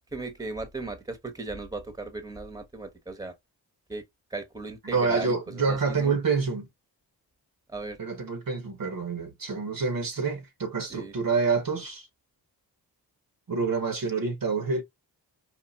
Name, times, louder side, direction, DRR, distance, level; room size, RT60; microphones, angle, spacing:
voice 1, 0.1-3.3 3.9-4.0 4.3-6.1 7.7-8.0 10.9-11.1, right 3 dB, 10° right, 1.1 m, -37 dB
voice 2, 4.8-6.7 8.0-12.1 13.5-14.8, right 4 dB, 50° right, 1.1 m, -27 dB
4.3 x 2.4 x 2.3 m
cardioid pair, 50°, 43 cm